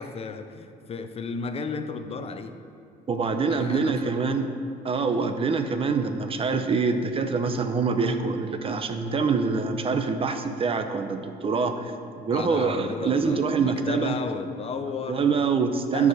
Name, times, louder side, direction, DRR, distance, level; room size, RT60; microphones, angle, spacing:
voice 1, 0.0-2.5 3.2-4.1 12.3-15.4 15.9-16.1, left 5 dB, 35° left, 9 dB, 0.6 m, -34 dB
voice 2, 3.1-4.5 4.8-14.2 15.1-16.1, right 5 dB, 35° right, 8 dB, 0.7 m, -25 dB
10.5 x 4.8 x 6.4 m, 2.4 s
cardioid pair, 110°, 17 cm